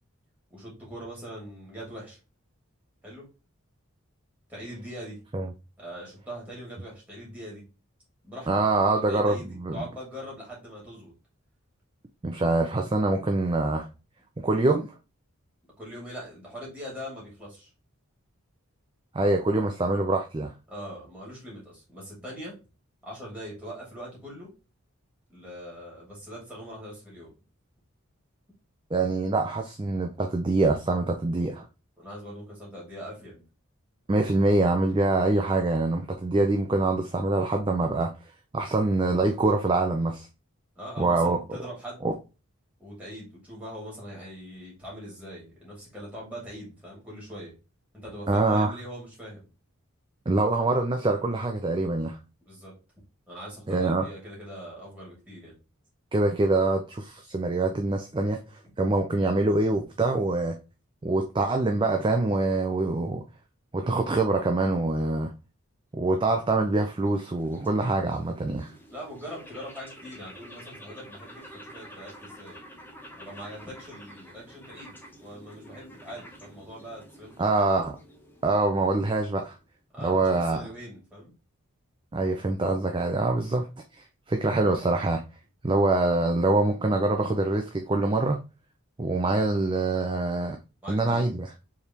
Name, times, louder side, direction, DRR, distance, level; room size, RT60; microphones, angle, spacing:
voice 1, 0.5-2.2 3.0-3.3 4.5-5.2 5.8-7.6 8.2-8.5 8.8-11.1 15.8-17.7 20.7-22.5 23.0-24.5 25.3-27.3 32.0-33.4 40.8-42.1 42.8-47.5 47.9-49.5 52.4-52.7 53.3-55.5 68.9-72.6 73.1-77.7 79.9-81.3 90.8-91.3, equal, 5° right, 2.4 m, -42 dB
voice 2, 8.5-9.8 12.2-13.9 14.4-14.9 19.1-20.5 28.9-31.7 34.1-38.1 38.5-40.3 41.0-41.4 42.0-42.1 48.3-48.7 50.3-52.2 53.7-54.1 56.1-58.4 58.8-60.6 61.0-63.2 63.7-65.3 65.9-68.7 77.4-77.9 78.4-79.5 80.0-80.7 82.1-83.7 84.0-85.2 85.6-88.4 89.0-90.6 90.9-91.5, right 2 dB, 20° right, 0.4 m, -25 dB
sound 1, 66.5-79.7, equal, 10° left, 0.8 m, -49 dB
4.6 x 3.4 x 2.9 m
head